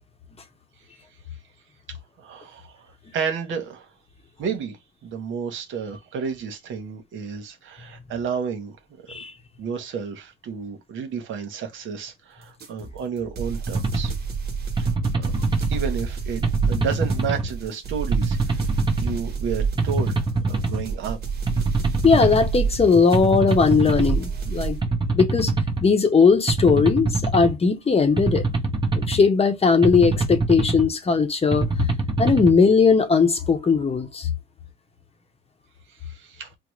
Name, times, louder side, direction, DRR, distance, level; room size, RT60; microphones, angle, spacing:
voice 1, 2.2-3.9 4.4-4.8 5.0-8.7 9.6-14.1 14.8-14.9 15.1-15.3 15.7-18.7 19.0-21.2 36.1-36.5, right 6 dB, 75° right, 0.9 m, -31 dB
sound 1, 12.6-24.8, right 5 dB, 55° right, 1.1 m, -29 dB
sound 2, 13.7-14.1 14.8-15.8 16.4-17.5 18.1-19.1 19.8-20.8 21.5-22.5 23.1-24.2 24.8-25.8 26.5-27.5 28.2-29.2 29.8-30.9 31.5-32.5, right 3 dB, 25° right, 0.8 m, -24 dB
voice 2, 22.0-24.8 25.1-25.5 25.8-28.4 28.9-31.7 32.2-34.3, left 5 dB, 30° left, 0.8 m, -18 dB
3.7 x 2.0 x 3.1 m
cardioid pair, 90°, 20 cm